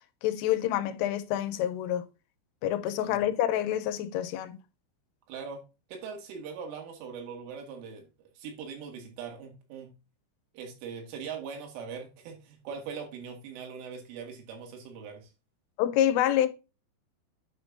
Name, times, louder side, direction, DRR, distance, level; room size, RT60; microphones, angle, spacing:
voice 1, 0.2-2.0 2.6-4.6 15.8-16.5, left 11 dB, 90° left, 3.3 m, -27 dB
voice 2, 5.3-5.6 5.9-8.1 8.4-9.9 10.5-15.3, right 6 dB, 80° right, 4.4 m, -41 dB
9.4 x 6.0 x 2.6 m
omnidirectional pair, 5.6 m